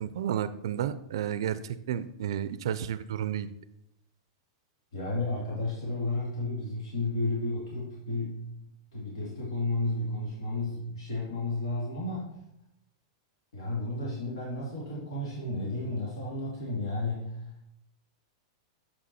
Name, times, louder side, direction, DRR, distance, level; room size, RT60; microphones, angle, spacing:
voice 1, 0.0-3.5, right 9 dB, 70° right, 14 dB, 0.4 m, -32 dB
voice 2, 4.9-8.5 8.9-12.3 13.5-17.4, left 2 dB, 90° left, -4 dB, 2.0 m, -32 dB
7.1 x 5.1 x 4.2 m, 0.81 s
supercardioid pair, 160°, 3 cm